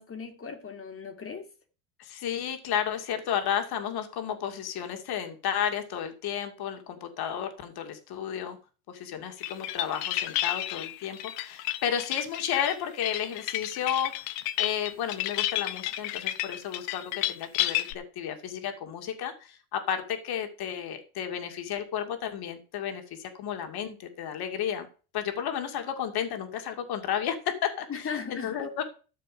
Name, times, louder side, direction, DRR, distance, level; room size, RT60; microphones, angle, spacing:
voice 1, 0.0-1.5 27.9-28.8, left 6 dB, 30° left, 2.3 m, -38 dB
voice 2, 2.0-8.6 8.9-24.9 25.1-28.0 28.3-28.8, left 9 dB, 55° left, 2.3 m, -32 dB
sound 1, 9.4-17.9, left 15 dB, 75° left, 1.0 m, -31 dB
13.5 x 6.7 x 5.1 m
supercardioid pair, 85°, 45 cm